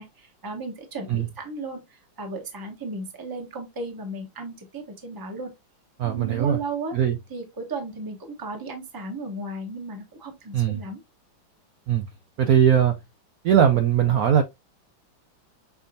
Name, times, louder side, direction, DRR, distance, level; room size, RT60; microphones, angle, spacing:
voice 1, 0.0-1.8 2.2-5.5 6.0-7.0 7.3-11.0, right 3 dB, 20° right, 0.6 m, -35 dB
voice 2, 6.0-6.6 6.9-7.2 10.5-10.8 11.9-12.0 12.4-13.0 13.4-14.4, right 9 dB, 85° right, 0.7 m, -20 dB
5.7 x 3.4 x 2.6 m
omnidirectional pair, 2.2 m